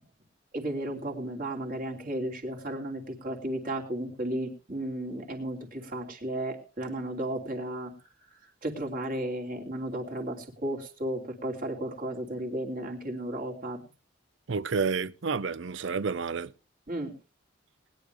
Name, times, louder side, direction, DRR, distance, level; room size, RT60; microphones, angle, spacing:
voice 1, 0.5-7.9 8.6-13.8 16.9-17.1, right 1 dB, 45° right, 3.1 m, -34 dB
voice 2, 14.5-16.5, right 5 dB, 70° right, 0.6 m, -30 dB
20.5 x 10.5 x 3.4 m
head